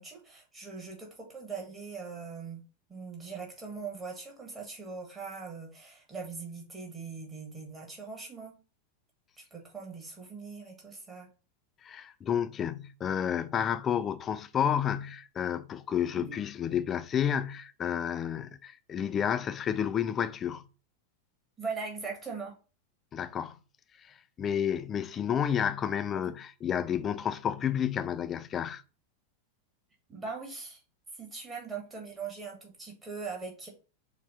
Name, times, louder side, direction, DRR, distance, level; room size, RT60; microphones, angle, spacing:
voice 1, 0.0-2.6 2.9-8.6 9.4-11.3 16.1-16.4 21.6-22.6 26.3-26.4 30.1-30.8 31.2-33.7, right 4 dB, 15° right, 1.8 m, -41 dB
voice 2, 11.8-20.6 23.1-23.6 24.4-28.8, left 9 dB, 25° left, 0.4 m, -30 dB
6.6 x 2.4 x 3.3 m
figure-of-eight pair, 90°, 0 cm